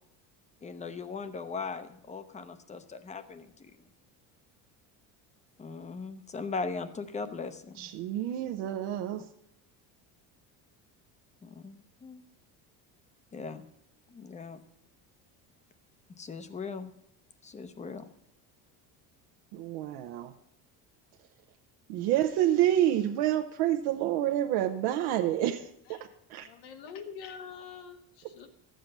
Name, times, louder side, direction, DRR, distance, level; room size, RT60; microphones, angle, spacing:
voice 1, 0.6-3.7 5.6-7.9 11.4-12.2 13.3-13.6 14.1-14.6 16.2-16.9 17.4-18.1, left 4 dB, 20° left, 12 dB, 0.7 m, -39 dB
voice 2, 7.8-9.2 19.5-20.3 21.9-26.0 26.3-26.5, right 12 dB, 80° right, 5 dB, 0.8 m, -28 dB
voice 3, 26.3-28.5, left 6 dB, 80° left, 7 dB, 1.6 m, -45 dB
13.0 x 7.7 x 6.6 m, 0.74 s
cardioid pair, 145°, 38 cm